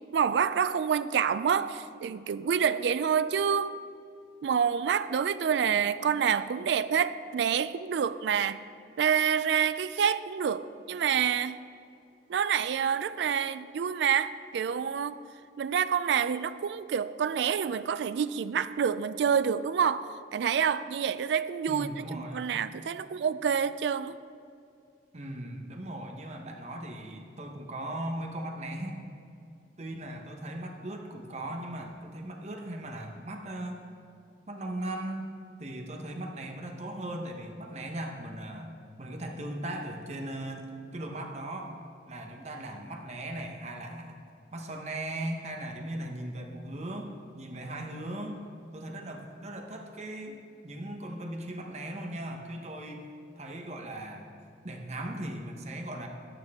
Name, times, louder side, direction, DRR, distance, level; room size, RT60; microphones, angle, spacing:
voice 1, 0.1-3.8 4.4-8.6 9.0-11.6 12.3-15.2 15.6-24.2, right 7 dB, 75° right, 0.3 m, -27 dB
voice 2, 21.7-22.5 25.1-29.0 29.8-33.8 34.5-35.3 35.6-41.8 42.1-44.2 44.5-48.5 48.7-53.1 53.4-54.4 54.6-56.1, right 1 dB, 40° right, 0.9 m, -38 dB
11.0 x 8.9 x 3.6 m
head